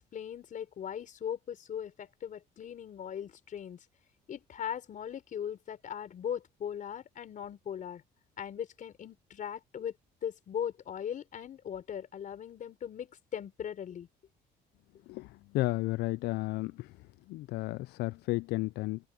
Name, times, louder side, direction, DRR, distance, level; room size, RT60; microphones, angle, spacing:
voice 1, 0.1-3.8 4.3-8.0 8.4-9.9 10.2-14.1, left 9 dB, 50° left, 4.4 m, -39 dB
voice 2, 15.5-16.9 17.3-19.0, left 19 dB, 75° left, 0.4 m, -32 dB
open air
cardioid pair, 110°, 17 cm